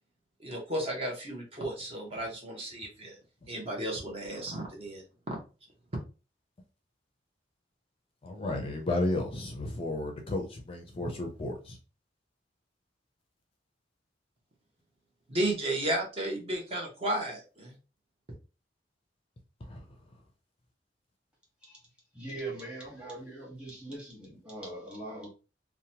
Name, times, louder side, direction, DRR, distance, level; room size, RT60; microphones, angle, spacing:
voice 1, 0.4-3.2 3.5-5.4 15.3-17.8, right 1 dB, 35° right, 0.7 m, -33 dB
voice 2, 8.2-11.8 19.7-19.9, left 2 dB, 30° left, 0.4 m, -33 dB
voice 3, 22.1-25.3, right 2 dB, 5° right, 1.1 m, -41 dB
2.8 x 2.1 x 2.7 m
head